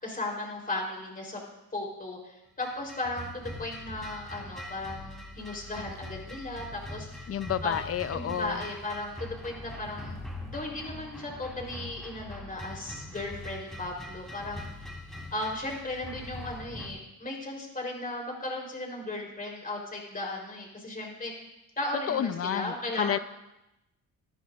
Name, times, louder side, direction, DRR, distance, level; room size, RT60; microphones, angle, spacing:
voice 1, 0.0-1.4 1.7-7.3 7.6-7.8 8.1-14.7 15.3-21.3 21.8-23.2, left 2 dB, 25° left, -1 dB, 3.9 m, -36 dB
sound 1, 2.6-16.9, left 1 dB, ahead, 3.8 m, -42 dB
voice 2, 7.3-8.6 22.1-23.2, left 9 dB, 45° left, 14 dB, 0.6 m, -30 dB
19.0 x 12.0 x 2.6 m, 0.92 s
cardioid pair, 100°, 33 cm